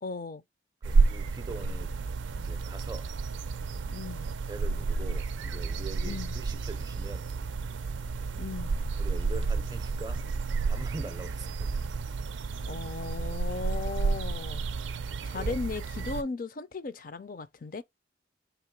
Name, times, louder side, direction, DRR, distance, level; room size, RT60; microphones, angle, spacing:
voice 1, 0.0-0.4 3.9-4.3 6.0-6.3 8.4-8.8 12.7-14.7 15.3-17.8, left 4 dB, 45° left, 0.4 m, -37 dB
voice 2, 0.8-2.0 2.3-3.1 4.5-7.3 9.0-10.3 10.7-11.9 15.3-15.6, right 3 dB, 20° right, 0.5 m, -43 dB
sound 1, 0.8-16.2, right 4 dB, 85° right, 0.4 m, -31 dB
3.4 x 2.9 x 4.5 m
head